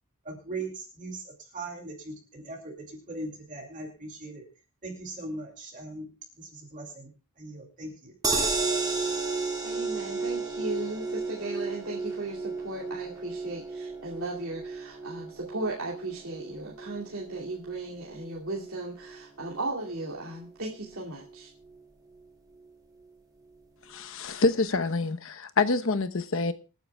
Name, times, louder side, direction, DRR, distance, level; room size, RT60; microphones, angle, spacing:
voice 1, 0.2-4.4 4.8-6.1 6.4-7.1 7.4-8.1, right 2 dB, 35° right, 2.5 m, -39 dB
sound 1, 8.2-20.5 20.9-21.0 21.2-21.3, right 3 dB, 20° right, 2.9 m, -33 dB
voice 2, 9.6-21.5, right 2 dB, 75° right, 2.6 m, -36 dB
voice 3, 23.9-26.5, left 3 dB, 65° left, 1.0 m, -26 dB
27.5 x 9.4 x 2.3 m
head